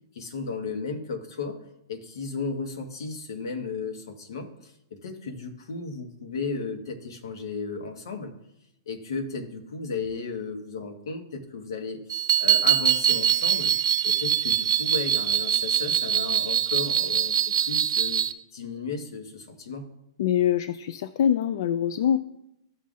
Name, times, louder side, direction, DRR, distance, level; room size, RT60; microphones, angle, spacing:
voice 1, 0.1-1.6 1.9-4.7 5.0-8.3 8.9-13.7 14.0-18.2 18.5-19.9, left 4 dB, 80° left, 6 dB, 1.4 m, -34 dB
sound 1, 12.1-18.3, right 9 dB, 75° right, 0.7 m, -23 dB
voice 2, 20.2-22.2, left 9 dB, 60° left, 14 dB, 0.3 m, -24 dB
14.5 x 5.5 x 2.5 m, 0.84 s
hypercardioid pair, 160°, 2 cm